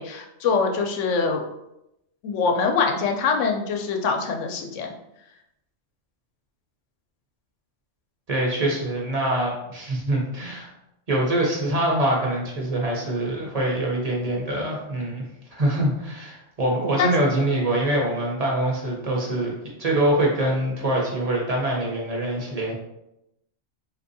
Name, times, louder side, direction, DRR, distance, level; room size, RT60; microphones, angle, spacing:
voice 1, 0.0-1.4 2.2-4.9 17.0-17.1, left 5 dB, 90° left, 3 dB, 0.9 m, -24 dB
voice 2, 8.3-10.7 11.1-15.2 15.5-19.5 19.8-22.7, right 1 dB, 40° right, -2 dB, 0.7 m, -24 dB
3.4 x 2.7 x 2.6 m, 0.84 s
omnidirectional pair, 1.2 m